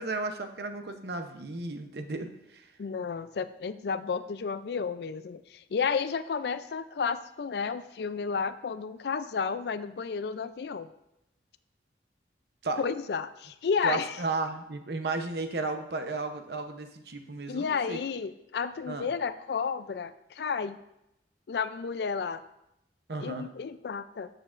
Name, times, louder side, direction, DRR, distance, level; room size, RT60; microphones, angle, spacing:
voice 1, 0.0-2.7 12.6-12.8 13.8-18.0 18.9-19.1 23.1-23.5, right 3 dB, 60° right, 6 dB, 0.8 m, -34 dB
voice 2, 2.8-10.9 12.8-14.1 17.5-20.8 21.5-22.4 23.2-24.3, left 5 dB, 65° left, 13 dB, 0.4 m, -32 dB
13.0 x 6.7 x 2.5 m, 0.85 s
head